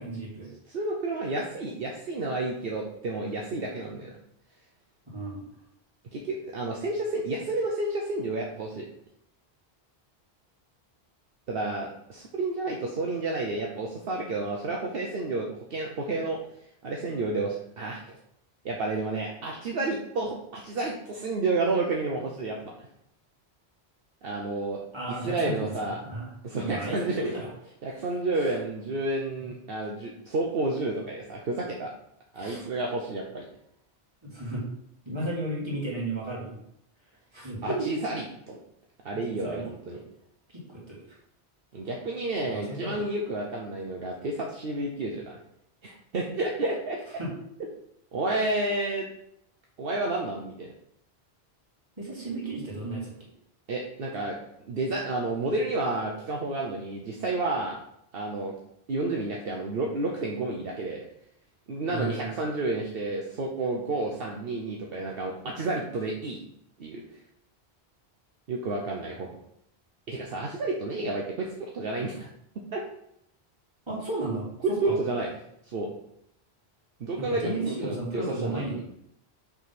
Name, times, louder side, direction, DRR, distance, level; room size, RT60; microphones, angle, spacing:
voice 1, 0.0-0.5 5.1-5.4 24.9-27.5 28.4-28.6 32.4-32.6 34.2-34.6 35.1-36.6 37.3-37.9 39.3-40.0 40.5-41.0 42.5-43.0 47.2-47.3 52.0-53.1 61.9-62.2 73.9-75.0 77.2-78.8, right 2 dB, 25° right, -6 dB, 2.4 m, -34 dB
voice 2, 0.7-4.1 6.1-8.9 11.5-16.4 16.8-18.2 18.6-22.9 24.2-24.8 25.1-26.0 26.4-27.3 27.8-31.9 32.3-33.4 37.6-38.6 39.0-40.0 41.7-45.4 45.8-47.0 48.1-49.1 49.8-50.7 53.7-54.4 54.7-57.8 58.1-58.5 58.9-61.0 61.7-66.4 66.8-67.0 68.5-69.3 70.1-72.3 72.7-72.8 74.8-75.3 75.7-75.9 77.0-78.8, right 2 dB, 65° right, -1 dB, 1.0 m, -30 dB
5.9 x 3.7 x 5.8 m, 0.76 s
omnidirectional pair, 1.1 m